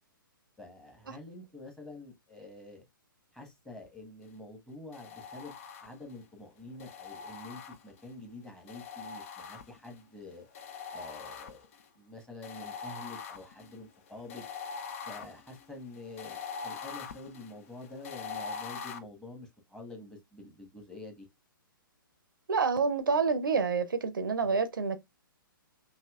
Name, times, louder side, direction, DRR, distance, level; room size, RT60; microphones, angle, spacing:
voice 1, 0.6-2.8 3.3-10.5 10.9-11.7 11.9-14.4 15.1-21.3 24.4-24.6, left 2 dB, 5° left, 1.3 m, -47 dB
sound 1, 4.9-6.2 6.8-8.1 8.7-10.0 10.5-11.9 12.4-19.0, left 5 dB, 40° left, 0.6 m, -43 dB
voice 2, 22.5-25.0, right 5 dB, 65° right, 0.6 m, -28 dB
5.7 x 2.9 x 2.3 m
figure-of-eight pair, 120°, 12 cm